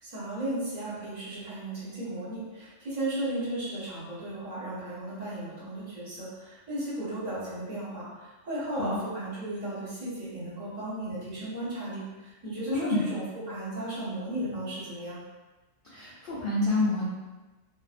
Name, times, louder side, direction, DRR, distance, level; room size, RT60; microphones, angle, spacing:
voice 1, 0.0-15.2, right 1 dB, 35° right, -8 dB, 0.8 m, -35 dB
voice 2, 15.8-17.0, left 2 dB, 70° left, -7 dB, 0.5 m, -28 dB
2.5 x 2.1 x 2.4 m, 1.2 s
omnidirectional pair, 1.4 m